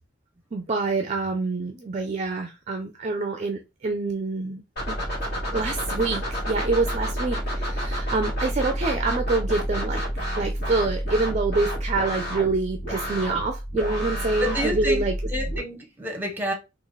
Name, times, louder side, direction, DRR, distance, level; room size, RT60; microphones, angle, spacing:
voice 1, 0.5-4.6 4.9-5.0 5.5-10.0 10.4-15.2, right 3 dB, 35° right, 0.4 m, -26 dB
sound 1, 4.8-15.6, equal, 55° left, 1.9 m, -29 dB
voice 2, 14.4-15.0 15.3-16.5, equal, 10° right, 0.8 m, -29 dB
3.7 x 2.4 x 3.1 m
head